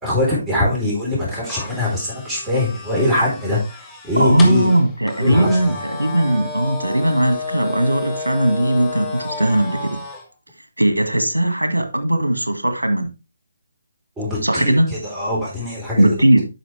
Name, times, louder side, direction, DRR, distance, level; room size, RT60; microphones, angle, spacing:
voice 1, 0.0-4.7 5.2-5.6 14.2-16.1, left 1 dB, 10° right, -5 dB, 3.8 m, -22 dB
sound 1, 1.5-10.2, left 3 dB, 10° left, 1.4 m, -32 dB
voice 2, 4.2-10.0 10.8-13.1 14.4-14.9 16.0-16.4, right 1 dB, 90° right, 7 dB, 1.7 m, -18 dB
9.1 x 6.0 x 3.3 m, 0.28 s
figure-of-eight pair, 145°, 0 cm